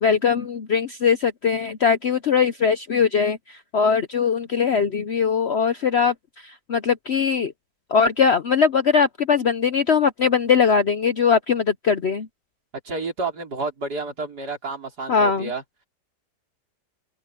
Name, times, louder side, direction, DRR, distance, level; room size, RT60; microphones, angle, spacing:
voice 1, 0.0-7.5 7.9-12.3 15.1-15.5, left 6 dB, 55° left, 0.7 m, -21 dB
voice 2, 12.8-15.6, right 3 dB, 65° right, 4.7 m, -30 dB
open air
omnidirectional pair, 1.8 m